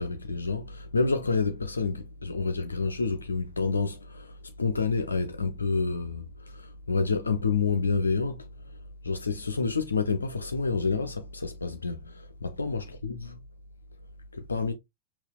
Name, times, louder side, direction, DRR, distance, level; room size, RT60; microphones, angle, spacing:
voice 1, 0.0-4.3 4.6-8.4 9.0-13.4 14.3-14.7, left 4 dB, 75° left, 0.5 m, -29 dB
5.5 x 2.4 x 2.3 m
figure-of-eight pair, 90°, 0 cm